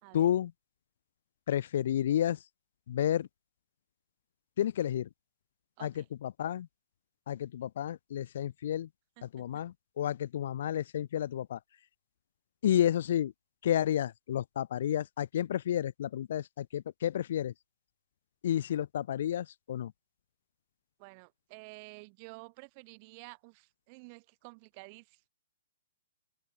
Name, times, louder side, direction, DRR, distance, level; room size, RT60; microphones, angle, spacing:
voice 1, 0.1-0.5 1.5-2.4 2.9-3.3 4.6-5.1 5.8-6.7 7.3-8.9 9.2-11.6 12.6-13.3 13.6-17.5 18.4-19.9, left 10 dB, 50° left, 1.3 m, -31 dB
voice 2, 21.0-25.2, right 33 dB, 30° right, 2.8 m, -51 dB
open air
hypercardioid pair, 170°, 0 cm